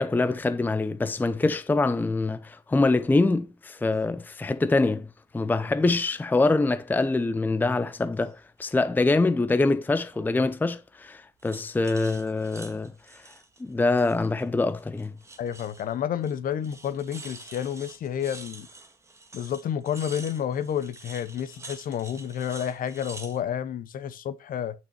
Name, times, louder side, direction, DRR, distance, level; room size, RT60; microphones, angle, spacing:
voice 1, 0.0-5.1 5.3-12.9 13.6-15.1, left 3 dB, 10° left, 0.6 m, -24 dB
sound 1, 3.7-4.0 5.4-5.7 6.1-7.0 7.5-8.4 10.1-10.6 11.4-14.5 14.8-15.9 16.2-16.4 16.6-23.4, right 2 dB, 15° right, 1.8 m, -47 dB
voice 2, 15.4-18.7 19.3-24.7, left 9 dB, 55° left, 1.1 m, -30 dB
9.4 x 6.1 x 4.4 m
cardioid pair, 110°, 17 cm